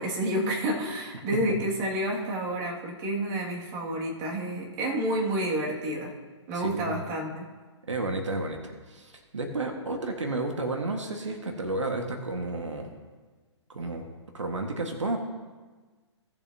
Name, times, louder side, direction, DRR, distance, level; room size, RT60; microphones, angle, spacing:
voice 1, 0.0-6.1 6.5-7.4, right 1 dB, 25° right, -2 dB, 2.1 m, -29 dB
voice 2, 6.5-7.0 7.9-12.9 13.7-14.1 14.3-15.2, right 2 dB, 75° right, 3 dB, 1.6 m, -32 dB
18.0 x 7.2 x 2.8 m, 1.4 s
figure-of-eight pair, 130°, 15 cm